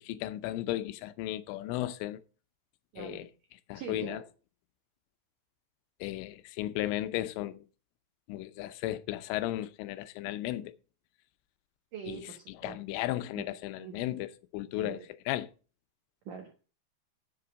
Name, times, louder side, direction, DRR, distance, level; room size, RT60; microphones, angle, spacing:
voice 1, 0.0-2.2 3.0-3.3 3.7-4.2 6.0-7.6 8.3-10.7 12.1-12.2 12.6-15.0 15.3-15.5, left 15 dB, 85° left, 3.3 m, -35 dB
voice 2, 2.9-3.2 3.7-4.2 11.9-12.8 13.3-13.5 13.7-14.0 14.8-15.1 16.3-16.5, right 7 dB, 65° right, 2.1 m, -43 dB
9.7 x 8.2 x 6.2 m
omnidirectional pair, 5.5 m